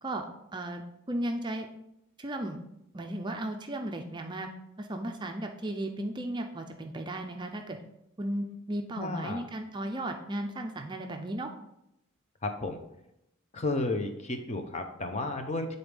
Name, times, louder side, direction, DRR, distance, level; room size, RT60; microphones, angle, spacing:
voice 1, 0.0-0.8 1.1-1.7 2.2-2.6 2.9-4.5 4.8-7.8 8.2-11.5, right 1 dB, 20° right, 4 dB, 0.4 m, -35 dB
voice 2, 9.0-9.4 12.4-12.8 13.5-15.8, left 2 dB, 30° left, 6 dB, 0.6 m, -32 dB
8.6 x 4.0 x 3.4 m, 0.82 s
head